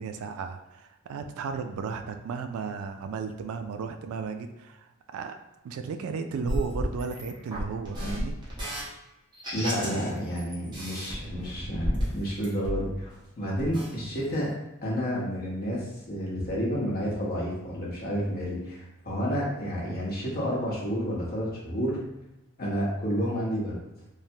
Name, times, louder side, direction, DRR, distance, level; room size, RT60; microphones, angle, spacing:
voice 1, 0.0-5.4 5.6-8.3, right 5 dB, 75° right, 8 dB, 0.3 m, -34 dB
sound 1, 6.5-8.8 9.3-10.1 10.4-13.2 13.6-13.9 14.3-14.4, equal, 20° right, 0.9 m, -32 dB
voice 2, 9.5-14.5 14.8-22.0 22.6-23.8, equal, 45° left, -4 dB, 0.9 m, -30 dB
3.2 x 2.0 x 2.7 m, 0.96 s
head